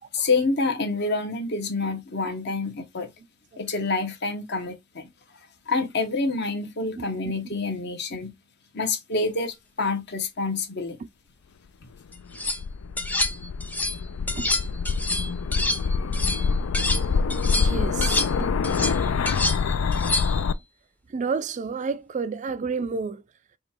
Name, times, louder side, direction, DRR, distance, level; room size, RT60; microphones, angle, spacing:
voice 1, 0.1-3.1 3.6-5.1 5.7-8.3 8.7-11.0, left 3 dB, 55° left, 1.1 m, -27 dB
sound 1, 12.1-12.6 13.0-14.0 14.3-17.0 17.3-20.5, left 2 dB, 10° left, 0.6 m, -28 dB
sound 2, 12.2-20.5, left 5 dB, 85° left, 0.4 m, -25 dB
voice 2, 17.5-18.5 21.1-23.2, right 5 dB, 35° right, 0.3 m, -31 dB
5.1 x 2.4 x 4.3 m
head